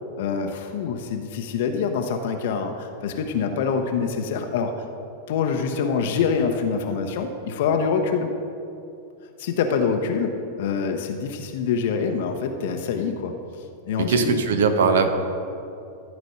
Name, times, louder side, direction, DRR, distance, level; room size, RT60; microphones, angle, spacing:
voice 1, 0.2-4.7 5.3-8.3 9.4-13.3 13.9-14.3, left 6 dB, 55° left, 5 dB, 0.7 m, -25 dB
voice 2, 14.0-15.1, right 4 dB, 60° right, 7 dB, 0.9 m, -20 dB
13.0 x 5.1 x 6.5 m, 2.7 s
figure-of-eight pair, 90°, 0 cm